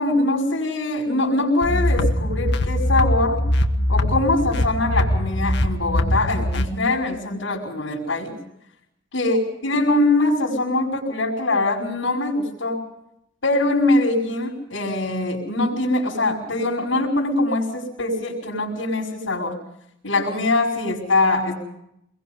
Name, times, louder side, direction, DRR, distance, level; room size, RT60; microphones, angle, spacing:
voice 1, 0.0-3.4 3.9-8.4 9.1-12.8 13.4-19.6 20.0-21.5, left 2 dB, 90° left, -3 dB, 5.6 m, -22 dB
sound 1, 1.6-6.6, left 1 dB, 60° left, 1.6 m, -22 dB
25.5 x 22.0 x 5.5 m, 0.76 s
head